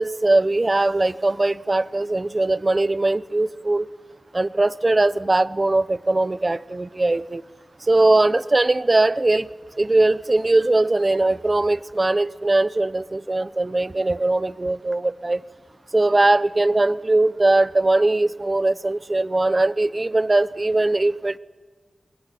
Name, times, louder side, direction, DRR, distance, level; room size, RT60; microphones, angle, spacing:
voice 1, 0.0-3.9 4.3-7.4 7.9-15.4 15.9-21.4, right 2 dB, 30° right, 16 dB, 0.8 m, -20 dB
29.0 x 21.0 x 9.0 m, 1.3 s
wide cardioid pair, 110°, 0 cm